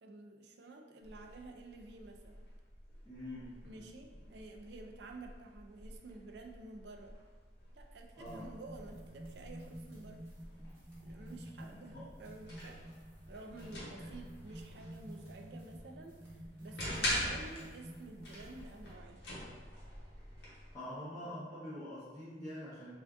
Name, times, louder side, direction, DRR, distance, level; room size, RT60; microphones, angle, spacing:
voice 1, 0.0-2.4 3.6-7.2 7.7-10.3 11.0-12.8 13.3-19.3, right 2 dB, 70° right, 3 dB, 0.4 m, -51 dB
sound 1, 1.0-20.7, equal, 70° left, 1.0 m, -46 dB
voice 2, 3.0-3.9 8.1-8.5 11.6-12.1 14.0-14.1 16.9-17.2 20.7-22.9, left 1 dB, 15° left, -12 dB, 0.7 m, -46 dB
sound 2, 8.3-18.9, right 1 dB, 15° right, 1.1 m, -51 dB
3.6 x 2.5 x 3.4 m, 1.5 s
head